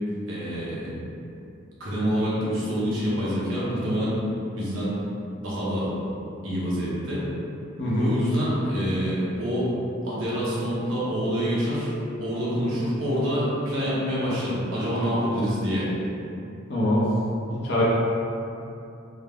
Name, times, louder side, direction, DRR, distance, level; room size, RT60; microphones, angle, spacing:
voice 1, 0.3-0.9 1.8-4.2 4.6-5.0 5.4-5.9 6.4-7.2 8.0-9.7 10.0-11.9 12.2-15.9, equal, 80° right, -8 dB, 1.1 m, -26 dB
voice 2, 7.8-8.1 16.7-17.1 17.5-17.8, left 1 dB, 55° left, -7 dB, 0.9 m, -23 dB
3.6 x 2.3 x 3.6 m, 2.7 s
head